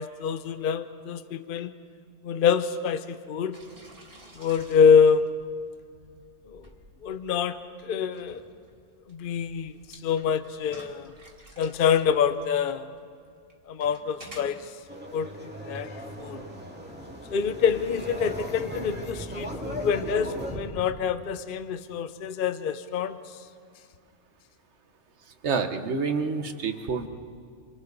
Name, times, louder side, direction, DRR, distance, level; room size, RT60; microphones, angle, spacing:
voice 1, 0.0-1.7 2.2-3.6 4.3-5.3 6.5-6.7 7.0-8.4 9.1-11.1 11.6-12.9 13.7-14.7 15.1-16.4 17.3-23.4, left 6 dB, 50° left, 11 dB, 0.8 m, -26 dB
sound 1, 3.5-21.0, right 1 dB, 45° right, 2.9 m, -50 dB
sound 2, 14.9-20.6, equal, 10° right, 2.1 m, -37 dB
voice 2, 25.4-27.1, right 5 dB, 60° right, 8 dB, 1.3 m, -28 dB
27.0 x 24.0 x 4.0 m, 2.3 s
omnidirectional pair, 1.3 m